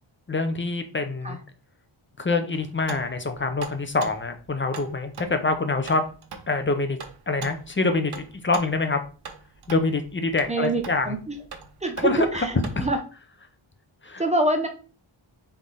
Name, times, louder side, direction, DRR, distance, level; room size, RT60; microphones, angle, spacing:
voice 1, 0.3-1.4 2.2-6.0 6.5-7.0 7.3-9.0 9.7-11.1 12.0-12.3 12.8-12.9 14.0-14.2, left 3 dB, 25° left, 7 dB, 0.5 m, -25 dB
sound 1, 2.5-13.0, right 4 dB, 55° right, 0.7 m, -42 dB
voice 2, 10.5-11.4 11.8-13.0 14.2-14.7, right 1 dB, 15° right, 4 dB, 0.7 m, -25 dB
3.6 x 3.5 x 4.0 m, 0.36 s
wide cardioid pair, 140°, 49 cm